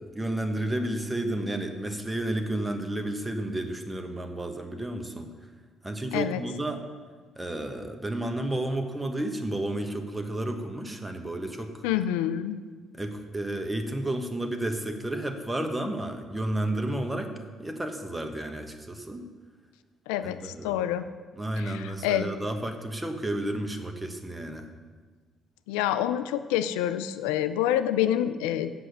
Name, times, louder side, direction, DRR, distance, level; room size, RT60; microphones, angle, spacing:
voice 1, 0.0-5.3 5.8-6.8 7.4-11.8 12.9-17.3 17.6-19.2 20.2-20.9 21.4-24.7, right 1 dB, 15° right, 5 dB, 1.3 m, -31 dB
voice 2, 6.1-6.4 11.8-12.6 20.1-21.1 21.6-22.3 25.7-28.7, left 11 dB, 85° left, 12 dB, 0.4 m, -27 dB
7.7 x 6.1 x 6.8 m, 1.5 s
hypercardioid pair, 55°, 0 cm